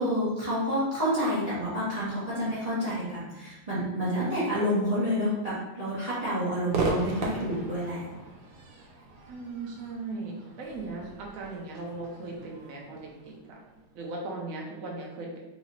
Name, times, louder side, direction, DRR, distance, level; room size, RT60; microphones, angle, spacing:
voice 1, 0.0-8.0, equal, 30° right, -11 dB, 0.8 m, -29 dB
Crowd / Fireworks, 6.7-14.0, right 2 dB, 85° right, 1.3 m, -37 dB
voice 2, 9.3-13.6 13.9-15.4, right 3 dB, 65° right, -1 dB, 0.9 m, -38 dB
3.1 x 2.9 x 2.7 m, 1.0 s
omnidirectional pair, 2.0 m